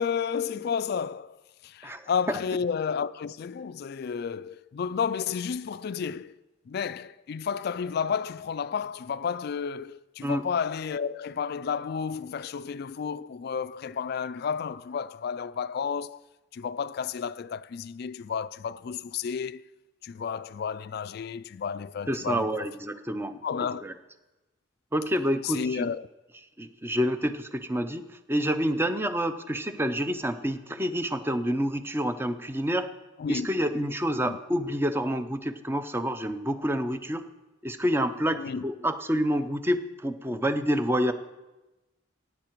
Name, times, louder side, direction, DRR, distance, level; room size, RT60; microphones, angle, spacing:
voice 1, 0.0-1.4 1.6-6.3 6.7-16.2 16.5-19.6 20.0-22.7 23.4-23.8 25.4-26.1 33.2-33.5 34.2-34.4 38.3-38.6, left 6 dB, 50° left, 0.3 m, -31 dB
voice 2, 22.1-23.3 23.7-23.9 24.9-25.9 26.6-32.9 33.3-37.2 37.6-41.1, equal, 10° right, 0.5 m, -28 dB
15.0 x 9.5 x 4.6 m
head